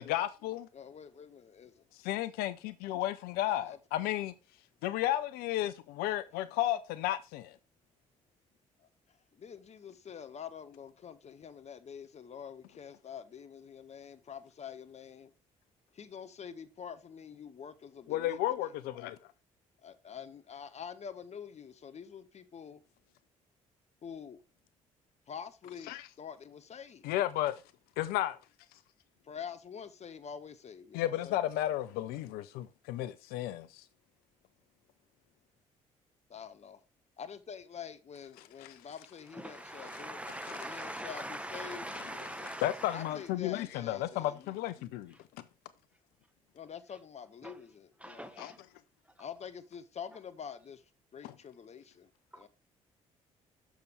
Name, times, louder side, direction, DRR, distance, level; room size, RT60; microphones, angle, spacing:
voice 1, 0.0-0.7 2.0-4.3 4.8-7.6 18.1-19.2 25.9-26.0 27.0-27.6 28.0-28.4 30.9-33.8 38.6-38.7 40.5-40.6 42.4-45.1 48.4-48.5 51.2-51.3, left 13 dB, 70° left, 0.5 m, -33 dB
voice 2, 0.7-1.9 3.5-3.8 8.8-15.3 15.9-18.7 19.8-22.8 24.0-24.4 25.3-27.1 29.2-31.4 36.3-36.8 37.2-41.9 42.9-44.6 46.5-48.3 49.2-50.8 51.1-52.1 52.3-52.5, left 7 dB, 40° left, 0.9 m, -46 dB
voice 3, 39.3-43.3 45.1-45.2 47.4-47.6 48.0-48.6 52.3-52.5, right 1 dB, 5° right, 1.0 m, -42 dB
6.7 x 6.3 x 3.4 m
hypercardioid pair, 50°, 17 cm